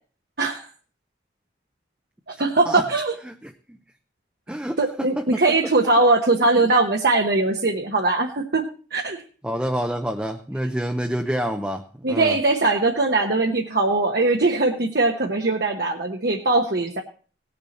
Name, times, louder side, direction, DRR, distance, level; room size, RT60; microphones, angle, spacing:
voice 1, 2.3-3.1 4.8-8.6 8.9-9.2 12.0-17.0, right 3 dB, 55° right, 2 dB, 1.0 m, -21 dB
voice 2, 3.2-3.8 4.5-5.6 9.4-11.8 12.1-12.4, equal, 5° right, 4 dB, 0.5 m, -28 dB
18.0 x 6.9 x 4.2 m, 0.40 s
head